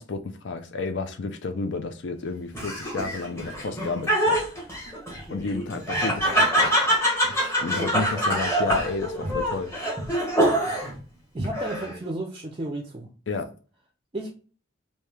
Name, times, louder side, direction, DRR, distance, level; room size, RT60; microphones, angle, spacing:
voice 1, 0.0-4.4 5.3-6.7 7.3-9.7 13.3-13.5, left 4 dB, 60° left, 0.5 m, -31 dB
Laughter, 2.5-11.0 11.4-12.1, right 1 dB, 15° left, 1.1 m, -25 dB
voice 2, 11.3-13.1 14.1-14.3, right 2 dB, 25° right, 0.4 m, -33 dB
3.1 x 2.7 x 3.3 m
head